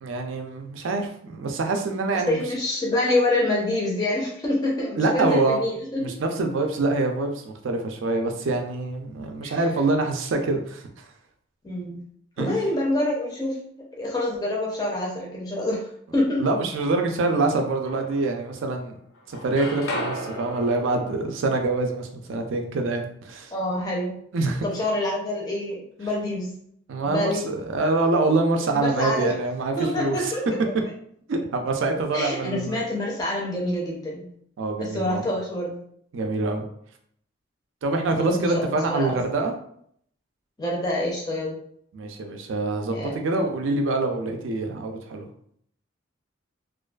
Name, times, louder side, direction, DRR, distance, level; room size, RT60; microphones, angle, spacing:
voice 1, 0.0-2.4 5.0-5.6 6.0-11.1 12.4-12.7 16.4-19.0 19.3-23.5 24.3-24.6 26.9-30.3 31.3-32.8 34.6-35.2 36.1-36.6 37.8-39.5 41.9-45.3, right 3 dB, 75° right, 4 dB, 0.4 m, -25 dB
voice 2, 2.1-6.1 9.4-9.6 11.6-12.0 12.4-13.6 14.0-15.8 16.1-16.5 23.5-24.1 24.6-26.5 27.0-27.4 28.7-29.3 29.8-30.4 32.1-34.3 34.8-35.7 38.2-39.2 40.6-41.6 42.9-43.1, left 1 dB, 20° left, -3 dB, 0.4 m, -26 dB
sound 1, 16.4-17.3 17.9-18.9 19.1-23.1, equal, 85° left, 0.6 m, -37 dB
2.4 x 2.4 x 2.2 m, 0.66 s
head